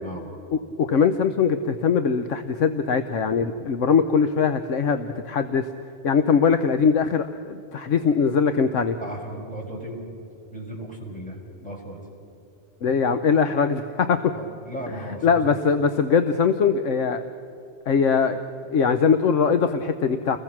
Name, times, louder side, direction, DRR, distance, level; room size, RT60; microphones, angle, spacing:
voice 1, 0.5-5.7 6.0-9.0 12.8-14.3 15.2-17.2 17.9-20.4, left 6 dB, 80° left, 9 dB, 1.2 m, -21 dB
voice 2, 9.0-10.0 10.5-12.0 14.3-15.6, right 1 dB, 5° left, -2 dB, 5.4 m, -36 dB
30.0 x 21.5 x 6.0 m, 2.7 s
omnidirectional pair, 1.3 m